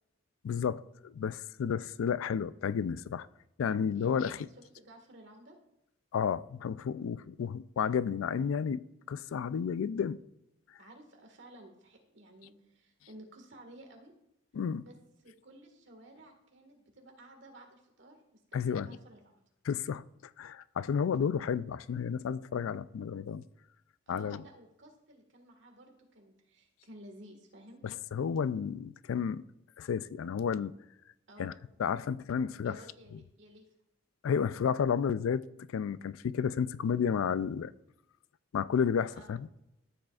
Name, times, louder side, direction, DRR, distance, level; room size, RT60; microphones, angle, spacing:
voice 1, 0.4-3.3 3.6-4.5 6.1-10.2 14.5-14.8 18.5-19.0 19.7-20.0 20.4-23.4 24.1-24.4 27.8-29.4 29.8-30.7 31.4-31.5 31.8-32.8 34.2-35.5 35.7-37.7 38.5-39.5, left 7 dB, 90° left, 0.3 m, -31 dB
voice 2, 3.9-5.6 10.8-14.1 14.8-19.4 24.1-27.8 31.3-31.8 32.6-33.6 39.1-39.4, right 1 dB, 60° right, 1.7 m, -54 dB
13.0 x 7.6 x 2.4 m
head